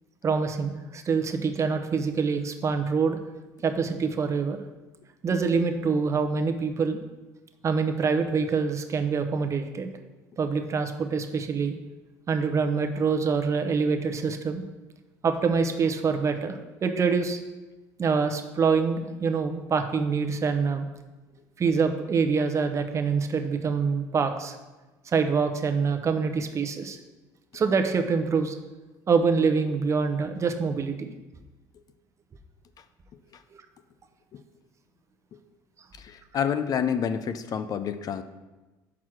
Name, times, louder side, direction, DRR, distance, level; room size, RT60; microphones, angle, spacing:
voice 1, 0.2-3.2 3.6-4.6 5.2-7.0 7.6-9.9 10.4-11.7 12.3-14.6 15.2-17.4 18.0-20.9 21.6-24.6 25.1-27.0 27.5-28.5 29.1-31.1, right 5 dB, 35° right, 6 dB, 0.8 m, -25 dB
voice 2, 36.0-38.2, left 7 dB, 45° left, 10 dB, 0.5 m, -28 dB
6.1 x 4.6 x 6.2 m, 1.1 s
supercardioid pair, 80°, 9 cm